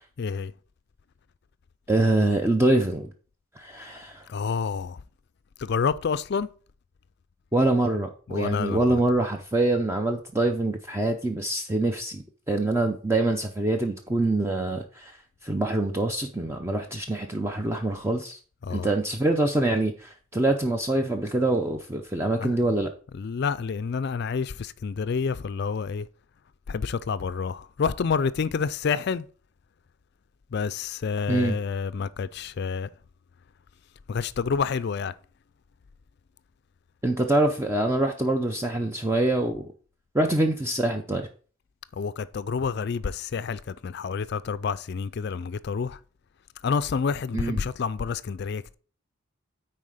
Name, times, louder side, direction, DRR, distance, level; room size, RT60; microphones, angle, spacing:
voice 1, 0.2-0.5 4.3-5.0 5.6-6.5 8.3-9.0 18.6-18.9 22.4-22.5 23.1-26.1 26.7-29.3 30.5-32.9 34.1-35.1 41.9-46.0 46.6-48.7, left 5 dB, 50° left, 0.3 m, -28 dB
voice 2, 1.9-3.1 3.6-4.2 7.5-15.2 15.4-18.4 18.7-22.9 31.3-31.6 37.0-39.7 40.1-41.2 47.3-47.6, right 2 dB, 10° right, 0.5 m, -25 dB
9.5 x 4.3 x 4.9 m
head